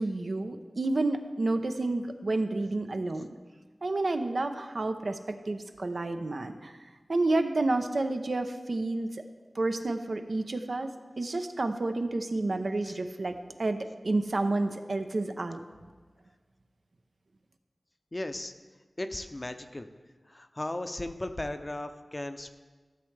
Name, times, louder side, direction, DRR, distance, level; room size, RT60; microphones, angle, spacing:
voice 1, 0.0-3.3 3.8-5.2 5.5-6.7 7.1-9.1 9.6-15.6, right 2 dB, 75° right, 6 dB, 0.6 m, -30 dB
voice 2, 18.1-18.5 19.0-19.9 20.3-22.6, left 1 dB, 35° left, 8 dB, 0.6 m, -36 dB
13.0 x 7.2 x 3.3 m, 1.4 s
wide cardioid pair, 50°, 0 cm